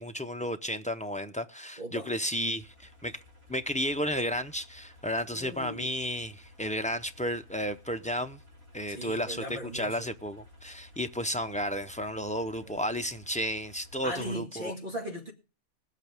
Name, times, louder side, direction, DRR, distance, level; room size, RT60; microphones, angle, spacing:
voice 1, 0.0-3.2 3.5-8.4 8.7-14.7, equal, 10° left, 0.3 m, -33 dB
voice 2, 1.8-2.1 5.3-5.9 8.9-10.1 12.6-12.9 14.0-15.3, equal, 35° right, 2.4 m, -38 dB
sound 1, 2.6-14.3, left 2 dB, 75° right, 4.7 m, -55 dB
20.5 x 8.3 x 3.5 m
omnidirectional pair, 1.5 m